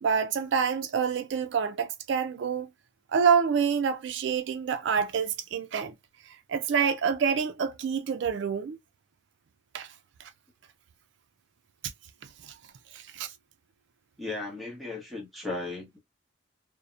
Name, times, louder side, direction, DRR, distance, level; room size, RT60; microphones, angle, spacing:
voice 1, 0.0-2.7 3.1-5.9 6.5-8.8 9.7-9.9 10.2-10.3 12.4-12.5 12.9-13.3, right 6 dB, 65° right, 0.3 m, -27 dB
voice 2, 14.2-16.0, left 2 dB, ahead, 0.7 m, -36 dB
2.7 x 2.0 x 2.4 m
head